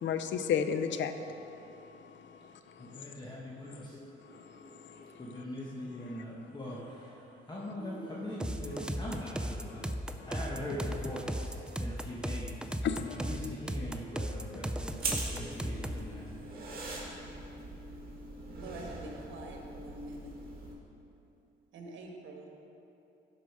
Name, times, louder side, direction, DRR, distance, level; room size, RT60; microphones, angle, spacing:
voice 1, 0.0-2.0 2.4-3.0 4.5-4.6 4.9-5.1 12.8-13.1, left 7 dB, 65° left, 9 dB, 0.6 m, -33 dB
voice 2, 2.8-16.6, left 1 dB, 20° left, -5 dB, 1.2 m, -42 dB
sound 1, 8.4-16.1, right 1 dB, 5° right, 0.4 m, -36 dB
sound 2, 15.0-20.7, right 2 dB, 45° right, 2.2 m, -41 dB
voice 3, 18.5-20.4 21.7-22.5, right 2 dB, 75° right, 1 dB, 1.4 m, -46 dB
12.0 x 4.9 x 4.8 m, 2.9 s
cardioid pair, 90°, 20 cm